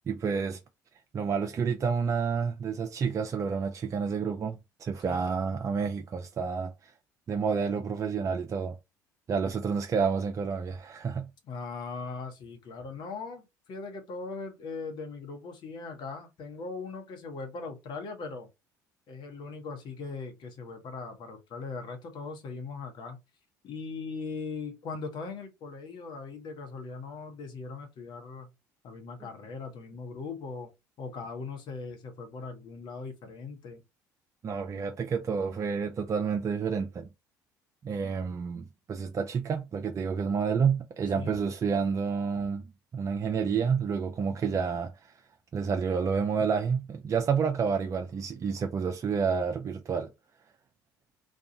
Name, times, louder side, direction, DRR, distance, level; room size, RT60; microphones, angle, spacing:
voice 1, 0.1-0.6 1.1-6.9 7.3-8.7 9.3-11.3 34.4-37.1 37.8-42.7 42.9-45.1 45.5-50.1, right 6 dB, 35° right, 0.4 m, -29 dB
voice 2, 11.4-18.5 19.1-23.2 23.6-28.5 28.8-30.7 31.0-33.8 41.1-41.4, left 4 dB, 55° left, 0.9 m, -40 dB
2.5 x 2.3 x 2.7 m
hypercardioid pair, 65°, 9 cm